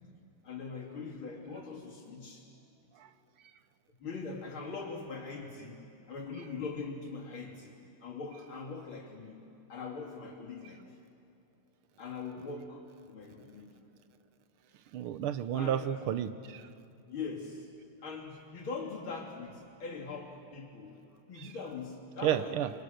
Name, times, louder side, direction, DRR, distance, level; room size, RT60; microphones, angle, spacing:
voice 1, 0.4-2.5 3.0-3.1 4.0-5.8 6.1-9.4 9.7-11.0 12.0-13.7 15.5-15.9 17.1-17.7 18.0-22.6, left 4 dB, 70° left, -1 dB, 3.9 m, -42 dB
voice 2, 14.9-16.7 21.4-21.5 22.2-22.7, right 10 dB, 85° right, 12 dB, 1.8 m, -31 dB
28.5 x 25.5 x 6.6 m, 2.7 s
omnidirectional pair, 2.3 m